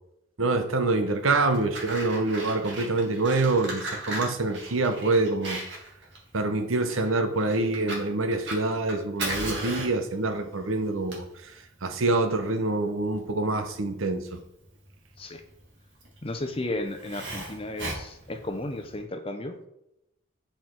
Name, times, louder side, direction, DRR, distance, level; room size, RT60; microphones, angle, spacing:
voice 1, 0.4-5.6 6.3-11.2 11.8-14.4, right 2 dB, 85° right, 0.9 m, -26 dB
Fire, 1.2-18.9, right 2 dB, 60° right, 2.0 m, -38 dB
voice 2, 16.2-19.7, left 1 dB, 30° left, 0.7 m, -34 dB
7.6 x 4.4 x 4.6 m
head